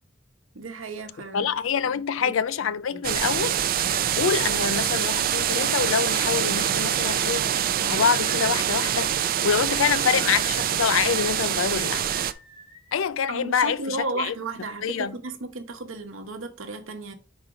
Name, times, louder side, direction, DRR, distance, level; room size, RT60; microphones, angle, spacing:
voice 1, 0.5-1.5 1.8-3.0 13.3-17.2, right 2 dB, 90° right, 0.9 m, -35 dB
voice 2, 1.3-3.5 4.2-7.5 7.8-9.1 9.4-12.1 12.9-14.3 14.8-15.1, left 7 dB, 85° left, 0.4 m, -25 dB
sound 1, 3.0-12.3, right 10 dB, 45° right, 0.4 m, -25 dB
sound 2, 3.4-4.2 5.5-6.4 7.7-8.6 9.8-10.7 12.0-12.9, equal, 25° left, 1.8 m, -44 dB
5.1 x 4.1 x 4.7 m
head